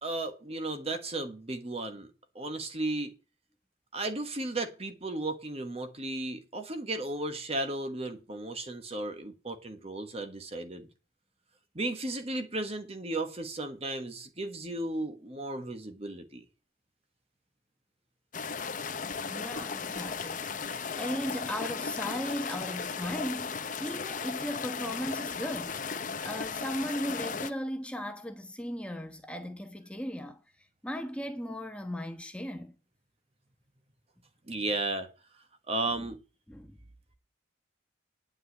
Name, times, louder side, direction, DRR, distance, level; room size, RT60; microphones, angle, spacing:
voice 1, 0.0-2.1 2.3-3.2 3.9-10.9 11.7-16.4 19.6-19.7 34.5-35.1 35.7-36.2, right 2 dB, 30° right, 1.3 m, -34 dB
sound 1, 18.3-27.5, left 5 dB, 40° left, 0.8 m, -36 dB
voice 2, 19.2-30.4 30.8-32.8 36.5-36.8, equal, 5° left, 1.1 m, -37 dB
9.8 x 5.5 x 8.4 m
head